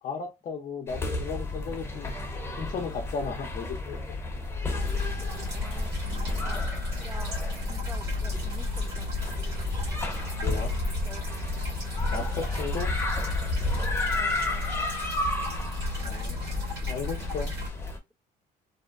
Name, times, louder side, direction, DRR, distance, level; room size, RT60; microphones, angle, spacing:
voice 1, 0.0-2.2 2.6-4.2 10.4-10.7 12.1-12.9 16.0-17.5, left 5 dB, 50° left, 0.6 m, -35 dB
sound 1, 0.9-18.0, left 2 dB, 15° left, 0.8 m, -32 dB
sound 2, 4.8-17.7, left 1 dB, 85° right, 1.4 m, -35 dB
voice 2, 5.5-9.1 11.0-11.3 12.1-12.7 14.1-14.8, right 1 dB, 5° right, 0.3 m, -48 dB
2.6 x 2.1 x 2.3 m
cardioid pair, 110°, 17 cm